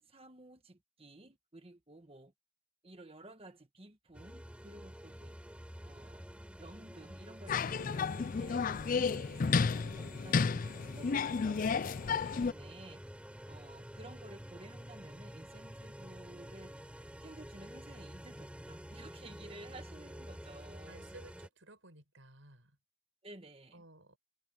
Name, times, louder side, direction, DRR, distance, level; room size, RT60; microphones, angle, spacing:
voice 1, 0.0-2.3 2.8-5.4 5.8-6.3 6.6-8.7 8.9-13.0 13.5-16.7 17.2-21.1 23.2-23.8, right 1 dB, 30° right, 1.3 m, -54 dB
sound 1, 4.1-21.5, equal, 5° right, 4.9 m, -49 dB
sound 2, 7.5-12.5, left 5 dB, 40° left, 0.4 m, -32 dB
voice 2, 20.9-22.8 23.7-24.2, right 2 dB, 70° right, 6.9 m, -56 dB
head